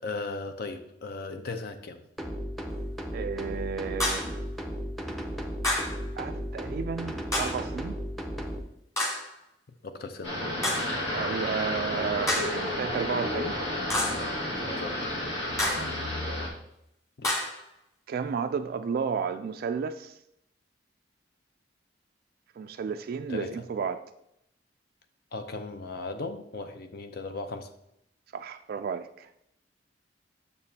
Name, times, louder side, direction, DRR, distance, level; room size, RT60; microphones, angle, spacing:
voice 1, 0.0-2.0 9.8-10.4 14.6-15.1 17.2-17.4 23.3-23.5 25.3-27.7, left 3 dB, 60° left, 8 dB, 0.6 m, -37 dB
sound 1, 2.2-8.6, equal, ahead, 0.6 m, -35 dB
voice 2, 3.1-4.4 6.2-8.0 11.1-13.6 15.7-15.9 18.1-20.1 22.6-24.0 28.3-29.3, right 6 dB, 55° right, 8 dB, 0.3 m, -32 dB
sound 2, 4.0-4.4 5.6-6.0 7.3-7.7 9.0-9.3 10.6-11.0 12.3-12.6 13.9-14.3 15.6-16.0 17.2-17.6, left 1 dB, 20° left, 1.6 m, -29 dB
sound 3, 10.2-16.5, left 1 dB, 75° left, 1.7 m, -31 dB
6.9 x 6.7 x 2.8 m, 0.80 s
head